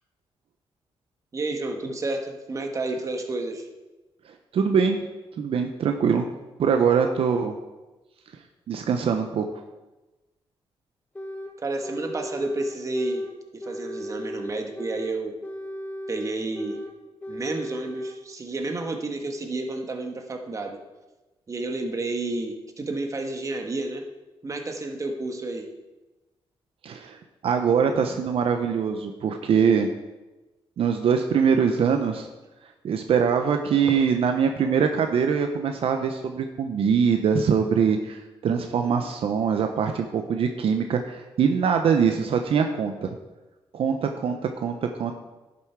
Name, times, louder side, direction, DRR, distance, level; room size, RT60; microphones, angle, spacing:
voice 1, 1.3-3.6 11.6-13.2 13.5-15.3 16.1-16.8 17.3-20.8 21.5-24.0 24.4-25.7, right 2 dB, 35° right, 4 dB, 1.3 m, -30 dB
voice 2, 4.3-5.0 5.4-6.3 6.6-7.6 8.7-9.5 26.8-27.2 27.4-29.9 30.8-32.3 32.8-43.1 43.7-45.1, right 6 dB, 65° right, 5 dB, 0.7 m, -23 dB
sound 1, 11.2-11.5 11.8-13.3 13.6-15.1 15.4-16.9 17.2-18.2, equal, 15° left, 1.4 m, -36 dB
11.0 x 7.1 x 4.6 m, 1.1 s
cardioid pair, 115°, 10 cm